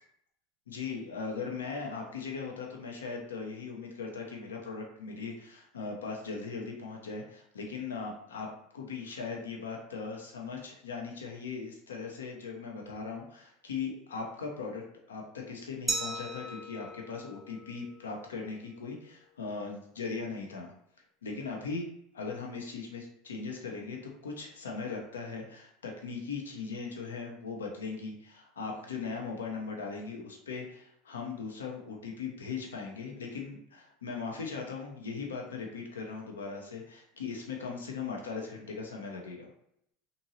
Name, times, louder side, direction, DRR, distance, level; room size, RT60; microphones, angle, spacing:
voice 1, 0.7-8.5 8.7-14.8 15.1-20.7 21.2-21.9 22.1-39.5, left 4 dB, 85° left, 0 dB, 0.5 m, -39 dB
Glass, 15.9-18.6, right 2 dB, 5° right, 0.6 m, -38 dB
2.7 x 2.6 x 2.7 m, 0.74 s
hypercardioid pair, 85°, 0 cm